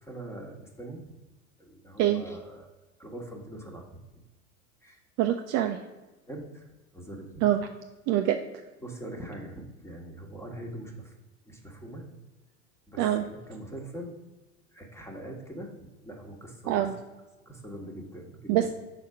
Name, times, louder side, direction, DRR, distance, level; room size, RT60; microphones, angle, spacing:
voice 1, 0.0-1.1 1.6-2.7 3.0-4.0 4.8-5.0 6.3-6.6 6.9-7.4 8.8-11.1 11.5-12.0 12.9-13.0 13.3-14.1 14.7-15.7 16.0-16.7 17.5-18.7, right 1 dB, 5° left, 1 dB, 1.3 m, -42 dB
voice 2, 5.2-5.8 7.4-7.7 8.1-8.4 13.0-13.2 16.7-17.0 18.5-18.7, right 12 dB, 40° right, 6 dB, 0.5 m, -24 dB
5.8 x 4.2 x 4.7 m, 1.1 s
hypercardioid pair, 85°, 41 cm